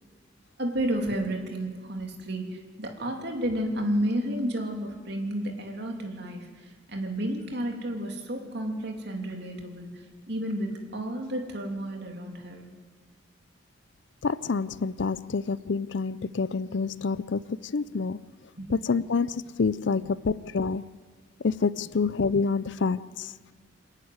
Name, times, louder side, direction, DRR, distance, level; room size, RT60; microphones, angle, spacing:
voice 1, 0.6-6.5 6.9-9.9 10.3-12.7 18.6-18.7, right 1 dB, 55° right, 3.0 m, -31 dB
voice 2, 14.2-18.2 18.7-20.9 21.4-23.3, left 4 dB, 60° left, 0.5 m, -27 dB
27.5 x 10.5 x 9.5 m
head